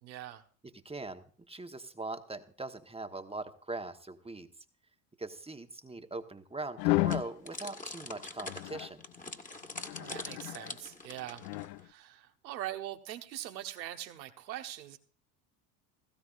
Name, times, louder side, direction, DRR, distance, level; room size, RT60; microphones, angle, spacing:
voice 1, 0.0-0.4 9.9-11.4 11.8-15.0, right 13 dB, 85° right, 6 dB, 1.4 m, -42 dB
voice 2, 0.8-4.5 5.2-9.0, right 2 dB, 10° right, 7 dB, 1.2 m, -41 dB
sound 1, 6.8-7.3 8.4-8.9 9.8-10.7 11.4-11.8, left 20 dB, 80° left, 0.6 m, -32 dB
sound 2, 7.1-11.8, left 2 dB, 15° left, 1.8 m, -44 dB
17.5 x 15.5 x 2.5 m, 0.43 s
hypercardioid pair, 75°, 50 cm